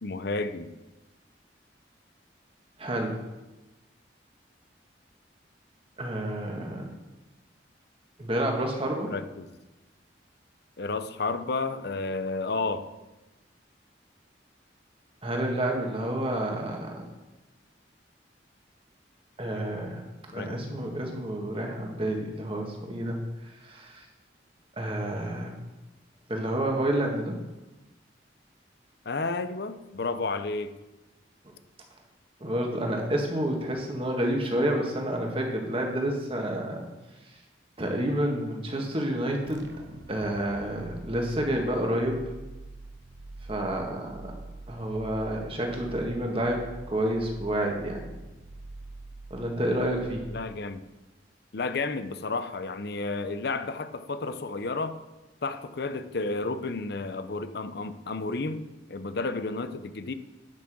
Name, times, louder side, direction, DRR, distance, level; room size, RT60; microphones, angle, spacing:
voice 1, 0.0-0.7 9.1-9.6 10.8-12.9 20.3-20.9 29.1-30.7 50.3-50.9 51.5-55.0 55.4-60.1, left 3 dB, 60° left, 11 dB, 0.6 m, -32 dB
voice 2, 2.8-3.2 6.0-6.9 8.2-9.1 15.2-17.1 19.4-20.0 20.3-23.2 23.4-24.1 24.7-25.6 26.3-27.3 32.4-36.8 37.8-39.7 40.1-42.2 43.5-44.3 44.7-48.1 49.3-50.3, right 1 dB, 30° right, 1 dB, 1.7 m, -29 dB
sound 1, 39.5-50.9, right 2 dB, 65° right, 0.9 m, -45 dB
10.5 x 6.1 x 6.2 m, 1.1 s
head